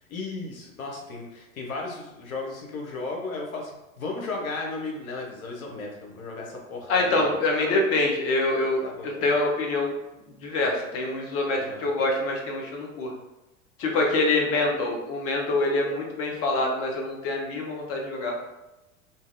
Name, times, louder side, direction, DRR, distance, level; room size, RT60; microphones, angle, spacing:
voice 1, 0.1-3.7 4.0-7.8 8.8-9.3 11.6-11.8, left 3 dB, 80° left, -1 dB, 0.8 m, -35 dB
voice 2, 6.9-9.9 10.4-13.1 13.8-18.4, left 2 dB, 35° left, 0 dB, 0.7 m, -25 dB
2.6 x 2.2 x 2.5 m, 1.0 s
hypercardioid pair, 90°, 41 cm